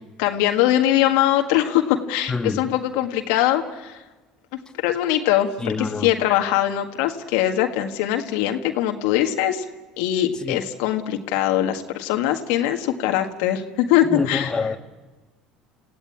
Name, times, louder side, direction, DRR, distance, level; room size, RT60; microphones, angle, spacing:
voice 1, 0.2-4.0 4.8-9.6 10.0-14.7, left 12 dB, 75° left, 5 dB, 1.7 m, -22 dB
voice 2, 2.3-2.6 5.6-6.1 10.5-10.6 14.1-14.8, left 4 dB, 20° left, 4 dB, 1.9 m, -25 dB
28.0 x 16.0 x 8.7 m, 1.2 s
hypercardioid pair, 75°, 3 cm